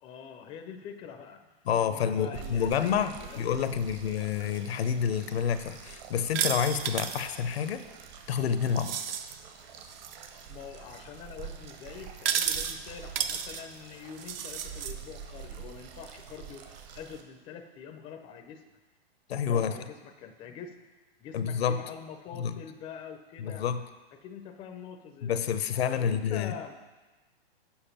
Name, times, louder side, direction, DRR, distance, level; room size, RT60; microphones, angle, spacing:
voice 1, 0.0-1.5 1.8-3.6 10.5-18.7 19.5-20.8 21.2-23.6 24.2-25.5 26.0-26.8, left 7 dB, 15° left, 6 dB, 0.4 m, -44 dB
voice 2, 1.7-7.8 8.3-9.0 19.3-19.7 21.3-21.8 22.3-22.6 23.4-23.8 25.2-26.8, left 8 dB, 75° left, 11 dB, 0.7 m, -29 dB
sound 1, 2.3-17.2, right 8 dB, 45° right, 0.9 m, -47 dB
sound 2, 6.3-7.3 8.8-9.3 9.9-10.3 12.2-12.8 13.2-13.6 14.2-14.9, right 8 dB, 65° right, 0.6 m, -32 dB
7.2 x 4.8 x 5.7 m, 1.2 s
hypercardioid pair, 130°, 31 cm